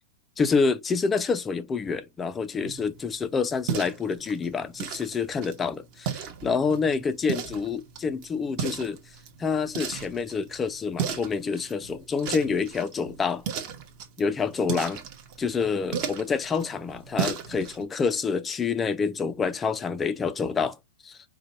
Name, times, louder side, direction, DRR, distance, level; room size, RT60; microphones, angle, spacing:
voice 1, 0.4-9.0 9.4-13.4 14.2-15.0 15.4-20.8 21.0-21.2, left 5 dB, 15° left, 0.4 m, -27 dB
sound 1, 2.6-17.8, right 8 dB, 35° right, 0.9 m, -36 dB
5.0 x 2.1 x 3.9 m
supercardioid pair, 165°, 0 cm